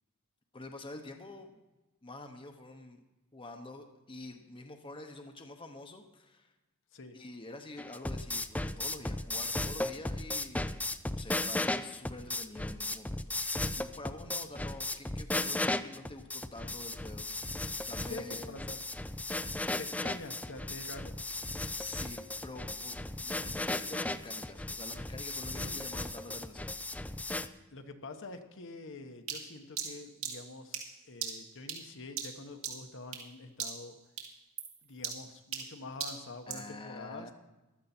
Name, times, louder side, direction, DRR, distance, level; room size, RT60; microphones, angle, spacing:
voice 1, 0.5-1.6 2.0-3.0 3.3-6.5 7.1-17.3 17.5-18.6 21.7-26.8 36.5-37.3, left 2 dB, 25° left, 5 dB, 0.9 m, -47 dB
sound 1, 7.8-27.5, left 2 dB, 5° left, 0.4 m, -36 dB
voice 2, 17.7-18.8 19.8-21.1 25.6-25.8 27.7-30.8 31.0-34.0 34.8-37.3, left 3 dB, 60° left, 6 dB, 1.1 m, -46 dB
sound 2, 29.3-33.3 33.6-33.9 34.2-36.7, right 7 dB, 65° right, 2.3 m, -40 dB
15.0 x 12.0 x 4.3 m, 1.1 s
head